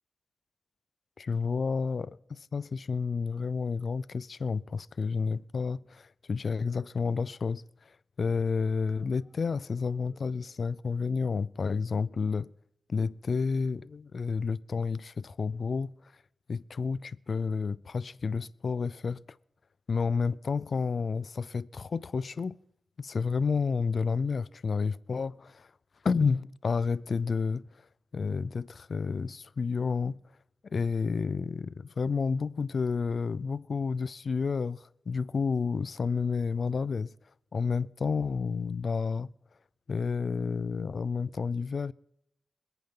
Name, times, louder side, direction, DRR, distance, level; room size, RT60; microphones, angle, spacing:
voice 1, 1.2-7.6 8.2-12.5 12.9-15.9 16.5-19.2 19.9-22.6 23.0-25.7 26.0-27.7 28.1-30.2 30.7-37.1 37.5-39.3 39.9-41.9, left 5 dB, 65° left, 0.4 m, -30 dB
sound 1, 9.0-10.9, equal, 5° left, 3.7 m, -63 dB
27.0 x 9.1 x 3.8 m
wide cardioid pair, 75°, 0 cm